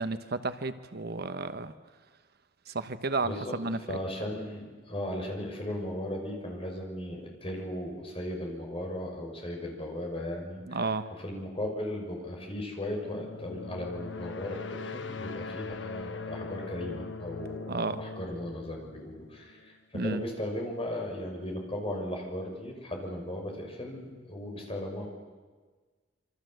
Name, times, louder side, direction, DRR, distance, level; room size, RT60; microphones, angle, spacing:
voice 1, 0.0-1.7 2.7-4.0 10.7-11.1 17.7-18.0 19.9-20.2, right 3 dB, 55° right, 11 dB, 1.1 m, -32 dB
voice 2, 3.2-25.1, left 1 dB, 30° left, 1 dB, 6.3 m, -37 dB
sound 1, 13.0-19.7, left 4 dB, 70° left, 1.2 m, -41 dB
27.5 x 25.0 x 8.0 m, 1.4 s
head